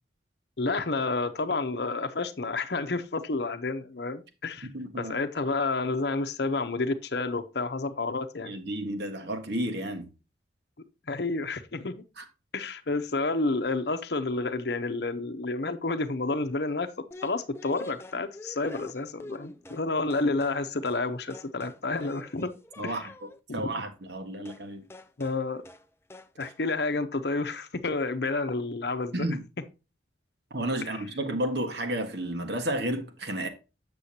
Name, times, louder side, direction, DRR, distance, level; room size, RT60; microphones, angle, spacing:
voice 1, 0.6-4.7 5.0-8.5 11.1-12.0 12.5-16.9 17.2-22.5 22.8-23.1 23.5-23.7 25.2-25.6 26.4-29.3 30.9-31.0, left 3 dB, 60° left, 0.7 m, -30 dB
voice 2, 4.7-5.1 8.4-10.1 12.2-12.3 22.8-23.1 23.5-24.8 29.1-29.4 30.5-33.5, right 1 dB, 65° right, 1.4 m, -32 dB
sound 1, 17.1-19.9 20.1-20.6 20.9-21.1 21.3-23.4 24.5-24.7 24.9-25.4 25.7-25.9 26.1-26.6, left 1 dB, 15° left, 0.4 m, -45 dB
8.1 x 6.9 x 2.8 m
head